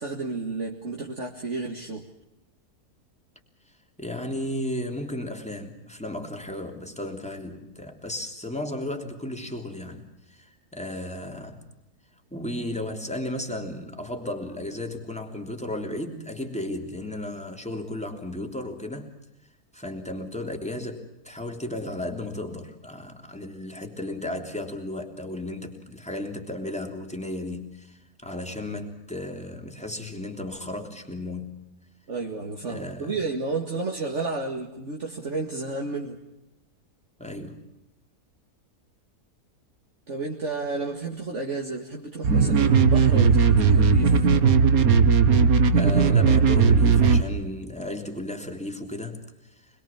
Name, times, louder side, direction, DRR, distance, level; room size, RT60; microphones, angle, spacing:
voice 1, 0.0-2.0 32.1-36.2 40.1-44.3, right 3 dB, 50° right, 0 dB, 2.4 m, -31 dB
voice 2, 4.0-11.6 12.3-19.1 19.7-31.6 32.7-33.2 37.2-37.6 45.7-49.2, left 1 dB, 5° left, 3 dB, 3.2 m, -34 dB
dubstep blood bath, 42.2-47.2, right 5 dB, 65° right, 1.7 m, -18 dB
26.5 x 21.5 x 7.3 m, 0.89 s
omnidirectional pair, 1.7 m